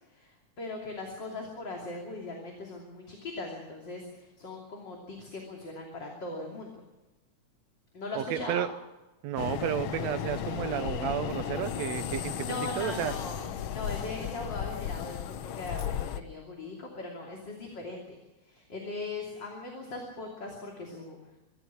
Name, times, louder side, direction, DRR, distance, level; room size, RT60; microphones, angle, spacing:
voice 1, 0.1-6.7 7.9-8.6 12.4-13.4 13.7-18.2 18.4-21.2, left 2 dB, 35° left, 0 dB, 3.4 m, -39 dB
voice 2, 8.1-8.7 9.2-13.1, right 11 dB, 70° right, 10 dB, 2.1 m, -32 dB
sound 1, 9.4-16.2, left 10 dB, 80° left, 1.1 m, -35 dB
25.0 x 14.5 x 7.3 m, 1.1 s
omnidirectional pair, 3.4 m